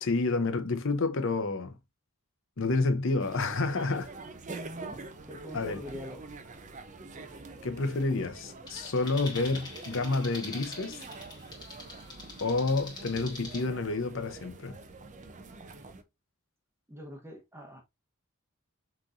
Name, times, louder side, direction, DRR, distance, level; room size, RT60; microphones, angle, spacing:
voice 1, 0.0-1.8 2.6-4.1 5.5-5.8 7.6-11.0 12.4-14.8, left 3 dB, 60° left, 0.8 m, -29 dB
sound 1, 3.2-16.0, right 3 dB, 35° right, 0.6 m, -46 dB
voice 2, 4.5-5.0 5.3-6.3 16.9-17.8, left 1 dB, 10° right, 1.0 m, -43 dB
sound 2, 8.7-13.6, left 3 dB, 20° left, 1.7 m, -44 dB
5.9 x 3.1 x 2.5 m
head